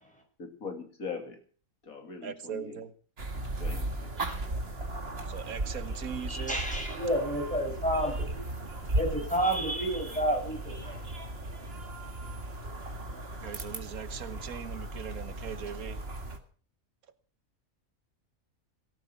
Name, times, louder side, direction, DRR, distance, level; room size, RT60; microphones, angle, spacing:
voice 1, 0.4-1.4 1.8-2.8 3.3-4.1 4.6-4.7, left 5 dB, 80° left, 5 dB, 2.9 m, -41 dB
voice 2, 2.2-2.9 5.3-6.6 13.4-16.0, right 8 dB, 90° right, 11 dB, 1.6 m, -40 dB
sound 1, 3.2-16.4, right 2 dB, 45° right, 2.1 m, -36 dB
voice 3, 6.3-8.4 8.9-11.0, right 1 dB, 5° left, 1 dB, 6.1 m, -30 dB
18.0 x 12.0 x 6.0 m, 0.43 s
omnidirectional pair, 1.5 m